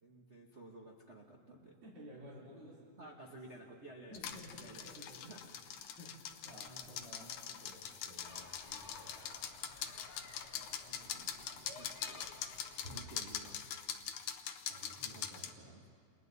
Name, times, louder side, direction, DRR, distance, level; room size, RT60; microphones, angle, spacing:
voice 1, 0.0-1.8 3.0-4.2 4.6-5.4 6.6-6.9 10.9-12.3 12.9-13.7 15.0-15.8, right 2 dB, 80° right, -2 dB, 0.6 m, -54 dB
voice 2, 1.8-3.3 3.5-3.6 4.1-9.3 13.2-13.3 14.6-15.8, equal, 40° right, -7 dB, 3.9 m, -55 dB
sound 1, 4.1-15.5, left 9 dB, 75° left, 2.2 m, -44 dB
sound 2, 8.2-13.3, left 2 dB, 25° left, 1.7 m, -54 dB
29.5 x 28.0 x 4.1 m, 2.3 s
omnidirectional pair, 3.5 m